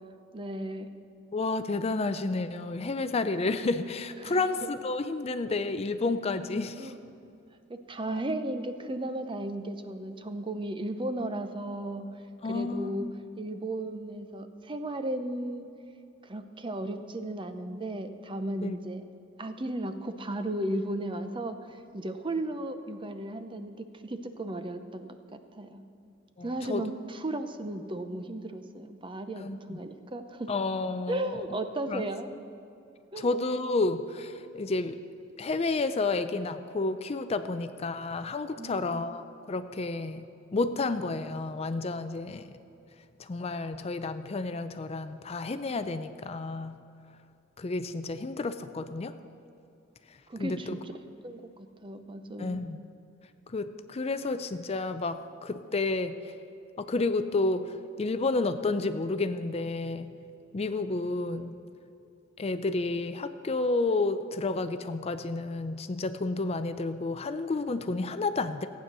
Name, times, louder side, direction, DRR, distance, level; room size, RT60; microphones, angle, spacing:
voice 1, 0.3-0.9 4.2-4.5 6.8-7.0 7.7-12.1 12.5-13.1 13.4-15.7 16.2-19.0 19.4-25.8 26.4-30.5 31.1-32.3 33.1-33.3 38.6-39.1 50.3-50.9 51.2-52.7, right 1 dB, 25° right, 8 dB, 0.7 m, -35 dB
voice 2, 1.3-6.9 12.4-13.1 18.6-18.8 26.4-26.8 29.4-29.8 30.5-31.4 31.9-32.0 33.2-35.0 35.4-40.2 40.5-42.5 43.2-46.8 47.6-49.1 50.4-50.8 52.4-52.8 53.5-56.3 56.8-60.1 60.5-61.6 62.4-68.7, left 3 dB, 30° left, 10 dB, 0.4 m, -31 dB
15.0 x 9.0 x 6.7 m, 2.6 s
head